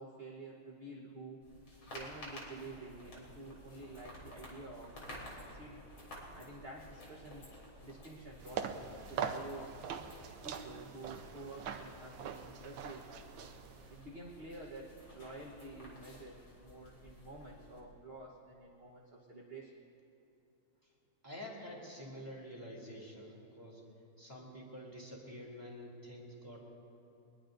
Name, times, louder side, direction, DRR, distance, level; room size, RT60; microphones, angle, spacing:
voice 1, 0.0-1.4 1.9-5.9 6.3-7.4 7.8-9.7 10.4-13.4 13.9-19.8, right 2 dB, 35° right, -2 dB, 1.1 m, -50 dB
sound 1, 1.4-17.8, left 1 dB, 85° left, 4.0 m, -53 dB
sound 2, 8.4-14.0, right 7 dB, 75° right, 1.6 m, -43 dB
voice 2, 21.2-23.8 24.2-26.6, equal, 10° right, -3 dB, 2.8 m, -48 dB
23.0 x 20.5 x 2.6 m, 3.0 s
omnidirectional pair, 2.3 m